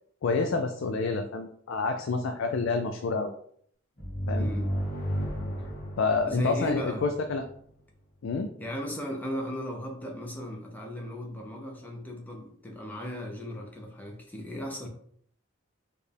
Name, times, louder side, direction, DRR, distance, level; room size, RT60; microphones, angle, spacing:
voice 1, 0.2-3.3 4.3-4.5 6.0-7.4 8.2-8.5, left 4 dB, 70° left, 5 dB, 0.3 m, -28 dB
sound 1, 4.0-7.5, equal, 45° left, 1.2 m, -33 dB
voice 2, 4.4-4.7 6.3-7.1 8.6-14.9, equal, 10° left, 0 dB, 0.6 m, -36 dB
4.4 x 2.4 x 3.3 m, 0.64 s
head